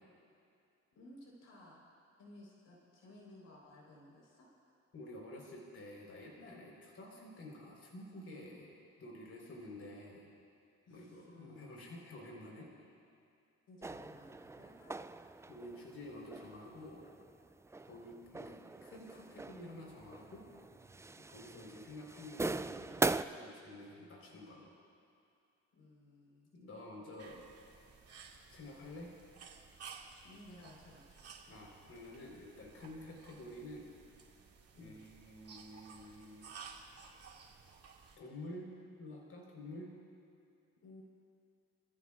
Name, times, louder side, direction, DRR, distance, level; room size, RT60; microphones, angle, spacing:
voice 1, 0.9-1.8 2.2-4.5 10.9-11.8 13.7-15.3 25.7-26.8 27.3-27.4 30.2-31.3 34.7-35.0 40.8-41.0, left 1 dB, 80° left, -3 dB, 4.4 m, -57 dB
voice 2, 4.9-10.3 10.9-12.7 15.5-17.1 17.8-20.5 21.2-24.7 26.5-27.4 28.5-29.1 31.5-33.9 34.8-36.5 38.2-38.7 39.0-39.9, left 1 dB, 50° left, -2 dB, 4.4 m, -50 dB
sound 1, 13.8-23.3, right 3 dB, 10° right, 0.3 m, -41 dB
sound 2, 27.2-38.2, right 6 dB, 55° right, 2.2 m, -55 dB
28.5 x 15.0 x 2.5 m, 2.5 s
cardioid pair, 90°, 30 cm